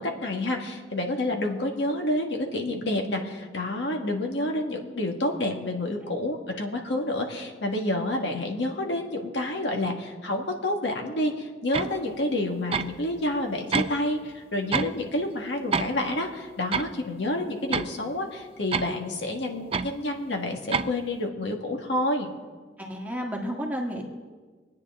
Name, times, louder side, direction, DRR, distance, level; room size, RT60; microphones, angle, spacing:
voice 1, 0.0-22.3, left 1 dB, 70° left, 2 dB, 1.7 m, -29 dB
sound 1, 11.7-12.0 12.7-13.0 13.7-14.0 14.7-14.9 15.7-16.0 16.7-16.9 17.7-17.9 18.7-18.9 19.7-19.9 20.7-20.9, right 5 dB, 30° right, 0.4 m, -27 dB
voice 2, 22.8-24.0, equal, 10° right, -1 dB, 1.6 m, -31 dB
25.0 x 9.5 x 3.6 m, 1.4 s
head